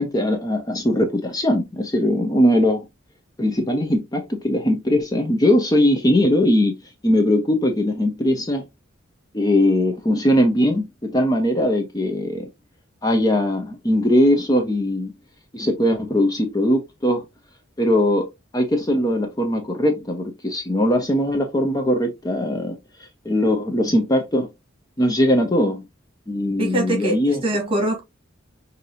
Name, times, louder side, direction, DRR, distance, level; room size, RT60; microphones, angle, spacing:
voice 1, 0.0-2.9 3.4-6.7 7.0-8.6 9.3-12.5 13.0-15.1 15.5-17.2 17.8-18.3 18.5-22.8 23.2-24.5 25.0-25.8 26.3-27.4, left 1 dB, 20° left, 0.7 m, -20 dB
voice 2, 26.6-28.0, right 1 dB, 30° right, 1.6 m, -23 dB
5.9 x 2.7 x 2.5 m
head